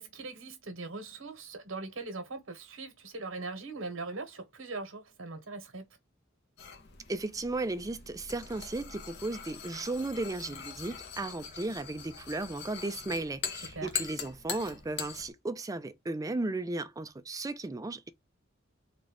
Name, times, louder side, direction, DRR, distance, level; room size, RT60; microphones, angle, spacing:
voice 1, 0.0-5.9 13.7-13.9, right 3 dB, 75° right, 1.2 m, -40 dB
sound 1, 6.6-15.3, left 7 dB, 55° left, 0.8 m, -42 dB
voice 2, 7.1-18.1, right 2 dB, 15° right, 0.4 m, -35 dB
3.8 x 2.3 x 3.4 m
head